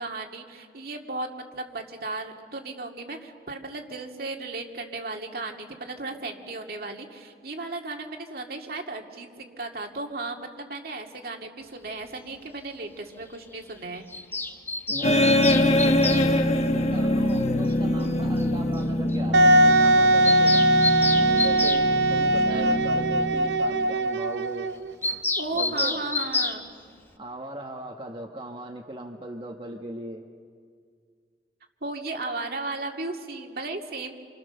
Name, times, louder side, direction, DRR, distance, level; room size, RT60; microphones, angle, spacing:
voice 1, 0.0-14.0 22.5-22.8 25.4-26.7 31.8-34.1, right 3 dB, 55° right, 2 dB, 2.3 m, -35 dB
Bird vocalization bird call bird song, 14.1-16.3 17.7-17.8 18.0-18.1 18.4-18.5 18.8-18.9 19.1-19.2 19.5-19.6 19.9-21.8 25.0-26.6, left 3 dB, 15° left, 1.0 m, -29 dB
voice 2, 14.9-20.7 21.1-24.7 25.5-26.0 27.2-30.2, right 1 dB, 30° right, 1 dB, 1.3 m, -38 dB
sound 1, 15.0-23.9, left 1 dB, 40° left, 1.2 m, -24 dB
Wind instrument woodwind instrument, 19.3-24.9, right 1 dB, 75° right, 0.6 m, -20 dB
28.0 x 28.0 x 6.8 m, 2.1 s
head